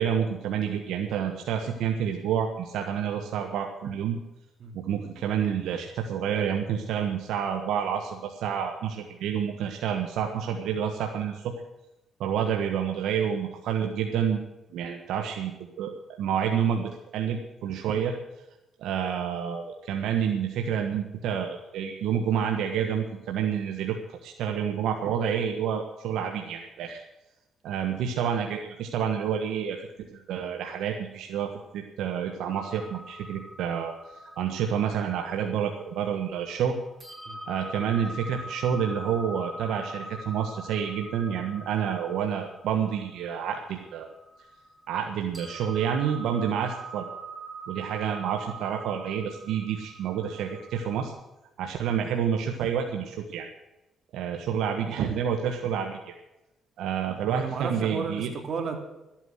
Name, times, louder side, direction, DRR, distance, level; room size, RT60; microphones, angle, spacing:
voice 1, 0.0-4.2 4.7-11.5 12.2-14.4 14.7-18.1 18.8-27.0 27.6-29.8 30.1-33.9 34.4-36.8 37.5-44.1 44.9-47.1 47.7-51.1 51.6-53.5 54.1-56.1 56.8-58.3, right 8 dB, 85° right, 3 dB, 1.3 m, -29 dB
sound 1, 32.5-36.6 37.0-45.1 45.3-51.1, right 2 dB, 10° right, 6.6 m, -43 dB
voice 2, 57.2-58.8, right 5 dB, 55° right, 4 dB, 2.9 m, -33 dB
13.0 x 9.0 x 7.9 m, 0.97 s
cardioid pair, 90°, 0 cm